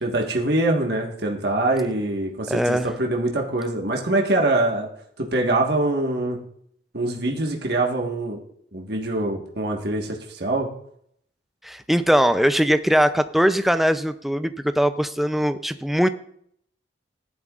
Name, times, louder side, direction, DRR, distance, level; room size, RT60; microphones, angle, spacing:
voice 1, 0.0-4.9 5.2-6.4 6.9-8.4 8.7-10.7, right 2 dB, 55° right, 0 dB, 1.4 m, -24 dB
voice 2, 2.5-2.9 11.6-16.1, equal, ahead, 10 dB, 0.4 m, -21 dB
15.0 x 11.0 x 2.4 m, 0.69 s
head